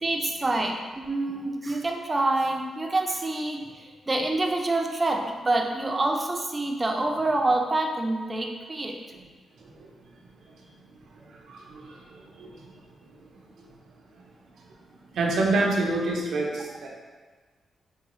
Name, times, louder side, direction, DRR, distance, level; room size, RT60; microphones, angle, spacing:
voice 1, 0.0-9.0, right 2 dB, 25° right, 2 dB, 0.4 m, -27 dB
voice 2, 11.5-12.5 15.1-16.9, right 2 dB, 80° right, -1 dB, 0.6 m, -27 dB
4.7 x 2.3 x 3.0 m, 1.4 s
cardioid pair, 95°, 0 cm